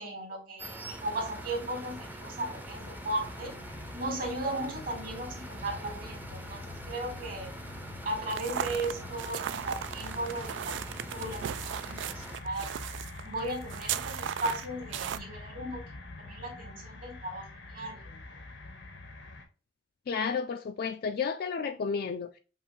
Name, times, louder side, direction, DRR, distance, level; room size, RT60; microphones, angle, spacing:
voice 1, 0.0-3.5 3.9-7.5 8.0-10.7 11.1-12.0 12.4-12.6 13.2-15.8 16.3-17.4 17.7-18.0, right 1 dB, 55° right, 2.0 m, -36 dB
sound 1, 0.6-12.4, right 1 dB, 10° right, 0.5 m, -45 dB
sound 2, 0.7-19.5, left 2 dB, 80° left, 0.8 m, -45 dB
sound 3, 8.3-15.2, right 9 dB, 90° right, 0.3 m, -36 dB
voice 2, 20.1-22.4, left 5 dB, 55° left, 0.3 m, -32 dB
5.5 x 2.5 x 3.0 m
head